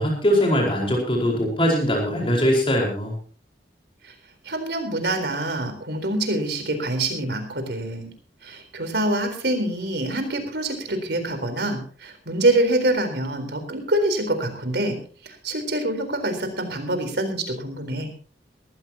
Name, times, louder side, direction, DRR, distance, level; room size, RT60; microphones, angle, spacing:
voice 1, 0.0-3.1, equal, 30° left, -1 dB, 4.8 m, -21 dB
voice 2, 4.4-8.1 8.4-14.9 15.2-18.1, right 1 dB, 70° right, 6 dB, 4.1 m, -25 dB
21.0 x 15.0 x 2.9 m, 0.41 s
head